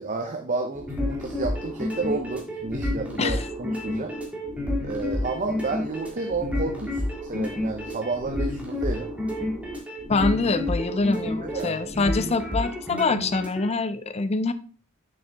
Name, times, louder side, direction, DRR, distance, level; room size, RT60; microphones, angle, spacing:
voice 1, 0.0-4.1 4.8-9.1 10.2-10.3 11.4-11.8, right 3 dB, 35° right, 4 dB, 0.7 m, -31 dB
sound 1, 0.7-13.7, left 1 dB, 5° right, 1.7 m, -30 dB
voice 2, 10.1-14.5, left 3 dB, 30° left, 12 dB, 0.5 m, -25 dB
6.6 x 6.4 x 3.5 m, 0.43 s
head